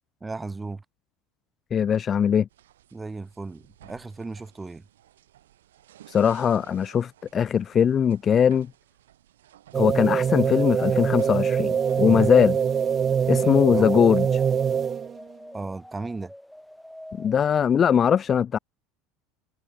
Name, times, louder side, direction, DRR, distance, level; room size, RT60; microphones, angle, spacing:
voice 1, 0.2-0.8 2.9-4.8 12.0-12.3 13.6-14.0 15.5-16.3, right 3 dB, 15° right, 3.3 m, -35 dB
voice 2, 1.7-2.5 6.1-8.7 9.8-12.6 13.3-14.3 17.2-18.6, left 8 dB, 35° left, 0.5 m, -21 dB
sound 1, 2.5-12.9, right 12 dB, 75° right, 3.6 m, -55 dB
sound 2, 9.7-15.2, right 7 dB, 35° right, 0.5 m, -24 dB
sound 3, 10.8-17.4, left 1 dB, 5° left, 2.0 m, -46 dB
hypercardioid pair, 75°, 0 cm